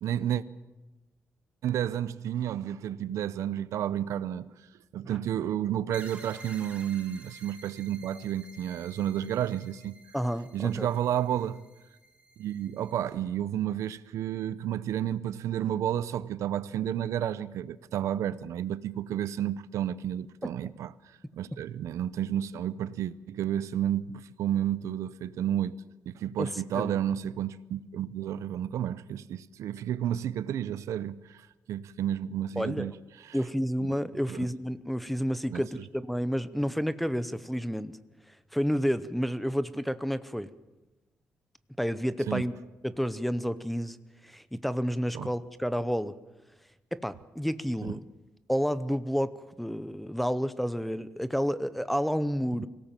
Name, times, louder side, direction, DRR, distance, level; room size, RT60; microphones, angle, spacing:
voice 1, 0.0-0.4 1.6-4.5 4.9-9.9 10.5-11.6 12.4-20.9 21.4-25.8 26.1-32.9 33.2-33.4 34.3-34.5 35.5-35.6 42.3-42.4 45.1-45.3 47.8-48.0 52.6-52.7, right 10 dB, 85° right, 0.7 m, -31 dB
sound 1, 5.9-13.2, right 2 dB, 25° right, 2.8 m, -52 dB
voice 2, 10.1-10.9 20.4-20.7 26.4-27.0 32.6-32.9 33.3-37.9 38.5-40.5 41.8-42.5 42.8-44.0 44.2-46.1 46.9-48.0 48.5-52.7, equal, ahead, 0.7 m, -30 dB
24.5 x 17.5 x 7.5 m
wide cardioid pair, 155°, 5 cm